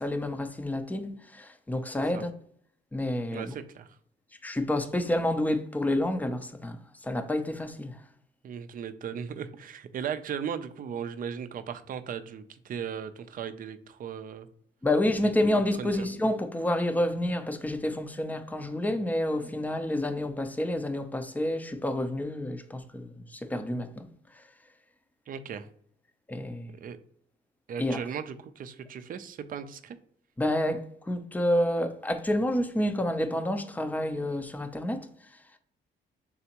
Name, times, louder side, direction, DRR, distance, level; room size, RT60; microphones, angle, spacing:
voice 1, 0.0-2.3 2.9-3.5 4.4-6.8 7.0-8.0 14.8-24.1 26.3-26.8 27.8-28.0 30.4-35.1, left 1 dB, 10° left, 0.5 m, -29 dB
voice 2, 3.3-3.9 8.4-14.5 15.2-16.1 25.3-25.7 26.7-27.0 27.7-30.0, right 7 dB, 45° right, 0.4 m, -37 dB
3.9 x 3.4 x 2.9 m
cardioid pair, 90°, 20 cm